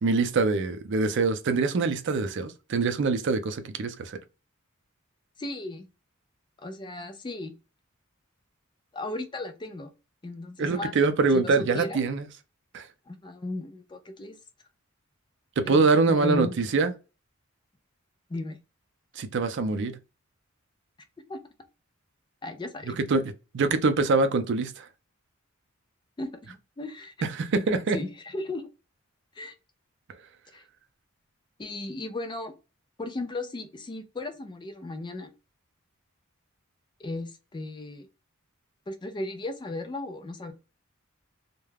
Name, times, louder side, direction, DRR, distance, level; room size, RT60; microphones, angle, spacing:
voice 1, 0.0-4.2 10.6-12.3 12.7-12.9 15.6-16.9 19.2-19.9 23.0-24.9 27.2-28.0, right 3 dB, 60° right, 0.4 m, -24 dB
voice 2, 5.4-5.9 6.6-7.5 8.9-9.9 10.2-10.9 11.3-12.0 13.1-14.4 15.7-16.5 18.3-18.6 21.3-21.4 22.4-23.0 26.2-27.3 27.9-28.7 29.3-29.5 30.5-30.6 31.6-32.6 33.0-35.3 37.0-38.1 38.9-40.5, left 2 dB, 20° left, 0.4 m, -36 dB
2.3 x 2.1 x 3.2 m
head